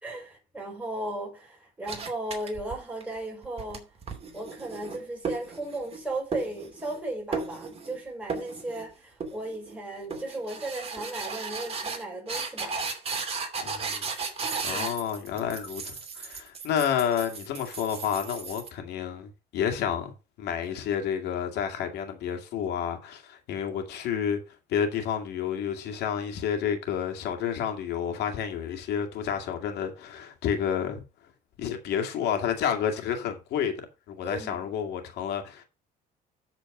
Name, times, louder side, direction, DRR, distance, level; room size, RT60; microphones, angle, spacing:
voice 1, 0.0-3.9 4.3-12.7 14.7-14.9 34.2-34.7, right 2 dB, 10° right, 5.7 m, -36 dB
sound 1, 1.9-3.0 3.4-6.0 6.3-7.0 7.3-8.0 8.3-8.9 9.2-9.7 10.1-18.7, right 4 dB, 35° right, 2.7 m, -35 dB
voice 2, 13.6-14.1 14.6-20.1 20.4-24.4 24.7-31.0 31.6-33.7 34.1-35.6, left 8 dB, 80° left, 2.3 m, -30 dB
13.0 x 4.5 x 4.9 m
cardioid pair, 110°, 17 cm